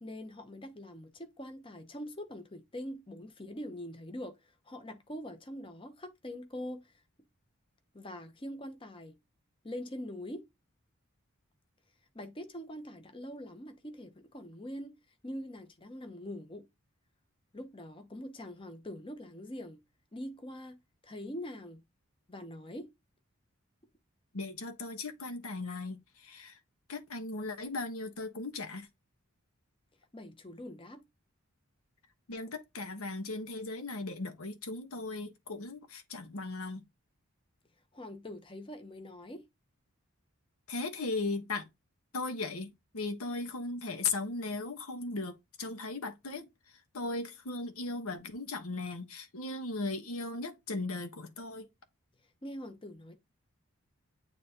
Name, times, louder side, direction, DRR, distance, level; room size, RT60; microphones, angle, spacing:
voice 1, 0.0-6.9 7.9-9.2 9.6-10.4 12.1-15.0 15.2-16.7 17.5-19.8 20.1-21.8 22.3-22.9 30.1-31.0 37.9-39.4 52.4-53.2, left 1 dB, 25° left, 0.8 m, -43 dB
voice 2, 24.3-26.6 26.9-28.9 32.3-36.8 40.7-41.7 42.1-46.5 46.9-51.7, left 3 dB, 80° left, 1.2 m, -37 dB
9.3 x 3.5 x 2.9 m
head